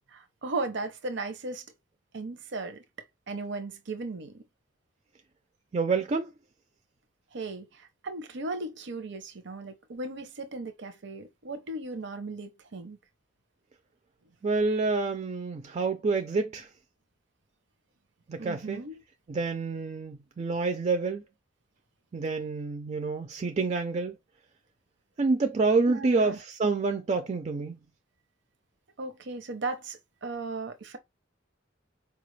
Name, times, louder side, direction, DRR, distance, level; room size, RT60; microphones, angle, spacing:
voice 1, 0.1-1.7 2.1-2.8 3.3-4.4 7.3-13.0 18.4-19.0 25.9-26.4 29.0-31.0, right 3 dB, 65° right, 0.7 m, -36 dB
voice 2, 5.7-6.3 14.4-16.7 18.3-18.8 19.3-21.2 22.1-24.2 25.2-27.8, right 3 dB, 35° right, 0.4 m, -28 dB
4.5 x 2.4 x 3.1 m
head